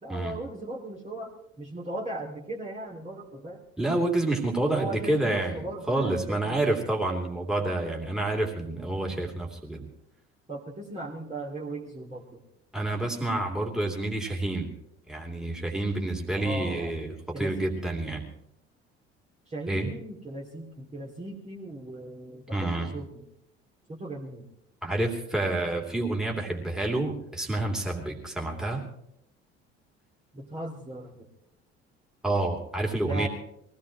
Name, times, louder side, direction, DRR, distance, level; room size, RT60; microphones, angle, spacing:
voice 1, 0.0-3.6 4.6-6.6 10.5-12.4 16.3-16.9 17.3-17.9 19.5-23.3 23.9-24.5 30.3-31.3 33.0-33.3, right 2 dB, 20° right, -3 dB, 2.5 m, -38 dB
voice 2, 3.8-9.9 12.7-14.7 15.1-18.3 19.7-19.9 22.5-22.9 24.8-28.8 32.2-33.3, right 2 dB, ahead, -1 dB, 3.0 m, -28 dB
23.0 x 17.0 x 3.1 m, 0.77 s
figure-of-eight pair, 55°, 32 cm